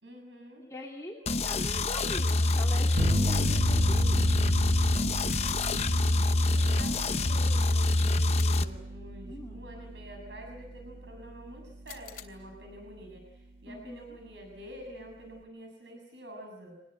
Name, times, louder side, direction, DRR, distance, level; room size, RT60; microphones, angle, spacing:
voice 1, 0.0-0.6 5.5-16.7, equal, 90° right, 2 dB, 6.9 m, -48 dB
voice 2, 0.6-4.3 9.2-9.6 13.7-14.0, left 1 dB, 20° left, -2 dB, 2.8 m, -42 dB
sound 1, 1.3-8.6, left 2 dB, 35° left, 0.9 m, -26 dB
sound 2, 2.2-2.8 5.3-5.8 8.4-9.0 11.9-12.2, left 10 dB, 50° left, 2.9 m, -48 dB
sound 3, 3.0-12.2, equal, 55° right, 1.6 m, -34 dB
25.0 x 20.0 x 9.1 m, 0.85 s
head